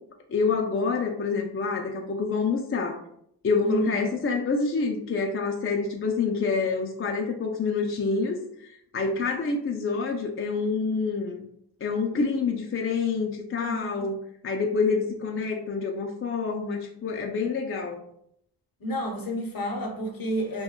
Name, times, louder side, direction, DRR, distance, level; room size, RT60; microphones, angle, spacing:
voice 1, 0.3-3.0 3.4-11.5 11.8-18.0, left 4 dB, 35° left, 2 dB, 0.4 m, -27 dB
voice 2, 3.6-4.0 13.6-14.1 18.8-20.6, right 1 dB, 55° left, 2 dB, 0.7 m, -30 dB
2.2 x 2.1 x 3.6 m, 0.70 s
cardioid pair, 40°, 42 cm